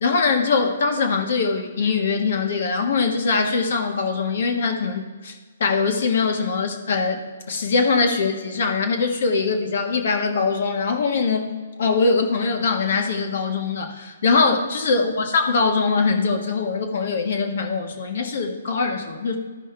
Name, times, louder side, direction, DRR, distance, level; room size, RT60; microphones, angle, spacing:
voice 1, 0.0-5.3 5.6-19.4, left 4 dB, 65° left, 4 dB, 1.4 m, -22 dB
14.0 x 5.4 x 3.3 m, 1.4 s
hypercardioid pair, 145°, 0 cm